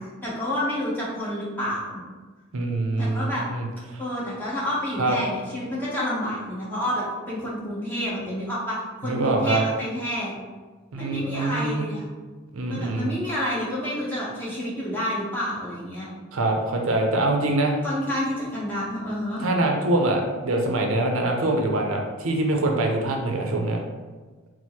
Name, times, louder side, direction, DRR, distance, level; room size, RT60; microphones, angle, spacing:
voice 1, 0.2-2.0 3.0-3.4 4.0-8.8 9.0-10.3 10.9-12.0 12.7-16.1 17.8-19.4, left 1 dB, 10° left, -8 dB, 1.1 m, -29 dB
voice 2, 2.5-3.6 3.9-4.0 5.0-5.2 9.0-9.6 10.9-11.8 12.5-13.1 16.3-17.7 19.4-23.8, right 2 dB, 70° right, 2 dB, 0.6 m, -24 dB
4.5 x 2.1 x 4.3 m, 1.3 s
head